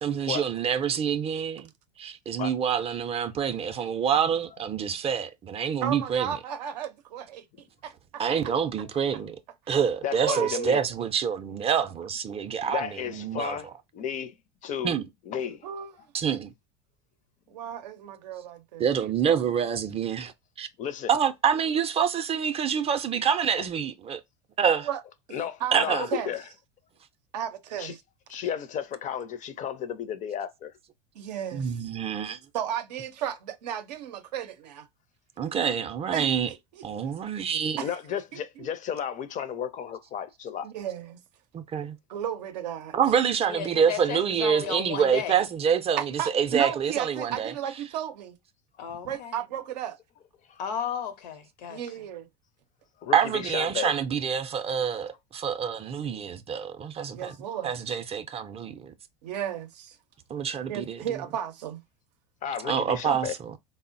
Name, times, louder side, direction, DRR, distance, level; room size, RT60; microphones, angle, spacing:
voice 1, 0.0-1.7 2.0-6.4 8.2-9.4 9.7-13.6 14.8-15.1 16.1-16.5 18.8-20.7 21.1-24.2 24.6-24.9 25.7-26.1 31.5-32.4 35.4-36.5 36.8-37.8 41.5-42.0 42.9-47.5 53.1-57.3 57.6-58.9 60.3-61.2 62.6-63.6, right 7 dB, 30° right, 0.4 m, -27 dB
voice 2, 5.8-7.9 10.2-10.7 15.6-15.9 17.5-19.5 24.9-25.0 25.6-25.8 26.1-26.3 27.3-28.0 31.2-31.8 32.5-34.9 36.1-36.8 37.8-38.0 38.3-38.7 40.6-41.2 42.1-43.0 46.0-48.4 49.0-50.0 51.7-52.3 57.1-57.7 59.2-60.0 60.7-61.8, right 10 dB, 80° right, 0.5 m, -34 dB
voice 3, 10.0-10.8 12.7-14.3 14.6-14.9 15.3-15.7 20.8-21.1 25.3-26.4 27.8-27.9 28.3-30.7 37.8-40.7 49.0-49.1 50.5-50.6 53.0-53.9 57.3-57.4 62.4-63.3, left 8 dB, 40° left, 0.5 m, -33 dB
voice 4, 43.4-45.4 48.8-49.4 50.6-51.8, left 8 dB, 75° left, 0.7 m, -34 dB
3.5 x 2.0 x 2.5 m
hypercardioid pair, 85°, 21 cm